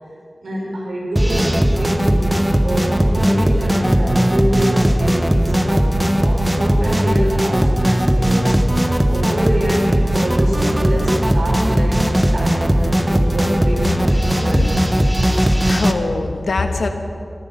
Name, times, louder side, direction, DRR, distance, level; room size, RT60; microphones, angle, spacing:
voice 1, 0.4-8.5 8.8-12.0 12.3-14.7, right 1 dB, 85° right, -3 dB, 4.8 m, -26 dB
sound 1, 1.2-15.9, equal, 10° right, 1.1 m, -17 dB
voice 2, 15.4-16.9, left 3 dB, 85° left, 6 dB, 1.3 m, -23 dB
17.0 x 13.5 x 5.8 m, 2.3 s
wide cardioid pair, 55°, 0 cm